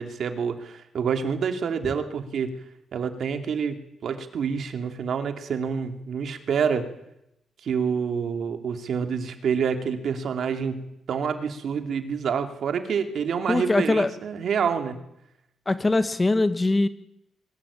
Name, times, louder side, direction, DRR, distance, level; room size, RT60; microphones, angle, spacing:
voice 1, 0.0-2.6 2.9-6.9 7.6-15.0, right 6 dB, 60° right, 6 dB, 2.8 m, -27 dB
voice 2, 13.5-14.1 15.7-16.9, left 2 dB, 15° left, 11 dB, 1.2 m, -22 dB
23.5 x 20.0 x 8.8 m, 0.82 s
cardioid pair, 145°, 0 cm